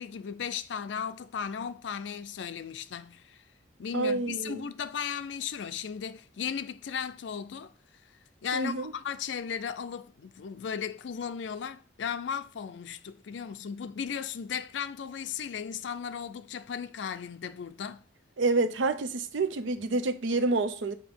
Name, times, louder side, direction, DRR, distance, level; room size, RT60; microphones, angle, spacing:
voice 1, 0.0-3.4 3.8-7.7 8.4-18.0, left 7 dB, 70° left, 0.4 m, -36 dB
voice 2, 3.9-4.6 8.5-8.9 18.4-21.0, right 3 dB, 80° right, 0.6 m, -28 dB
6.9 x 2.7 x 5.3 m
head